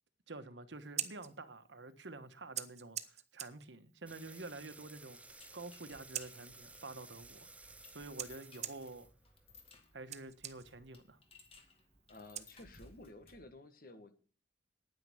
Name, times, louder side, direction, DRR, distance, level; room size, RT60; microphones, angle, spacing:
voice 1, 0.3-9.1 9.9-11.2, right 3 dB, 80° right, 1.2 m, -49 dB
Scissors, 0.7-13.1, right 10 dB, 35° right, 0.8 m, -49 dB
sound 1, 4.1-9.8, right 3 dB, 5° right, 0.6 m, -56 dB
sound 2, 5.3-13.5, left 3 dB, 30° left, 2.2 m, -62 dB
voice 2, 12.1-14.1, left 2 dB, 50° left, 1.9 m, -54 dB
9.8 x 9.5 x 7.7 m
head